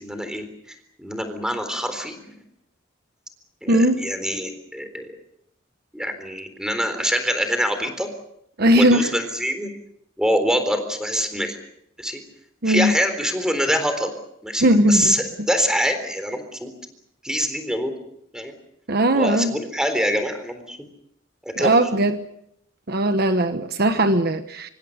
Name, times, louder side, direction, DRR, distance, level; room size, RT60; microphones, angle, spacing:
voice 1, 0.0-2.2 3.6-5.1 5.9-8.1 8.8-9.7 10.2-11.6 12.0-12.2 12.6-14.1 14.4-16.7 17.2-17.9 18.3-18.5 19.1-20.8 21.4-21.8, equal, 5° right, 8 dB, 3.8 m, -25 dB
voice 2, 3.7-4.0 8.6-9.1 12.6-12.9 14.6-15.1 18.9-19.6 21.6-22.2 22.9-24.7, right 1 dB, 50° right, 9 dB, 1.2 m, -18 dB
25.5 x 24.5 x 6.6 m, 0.74 s
head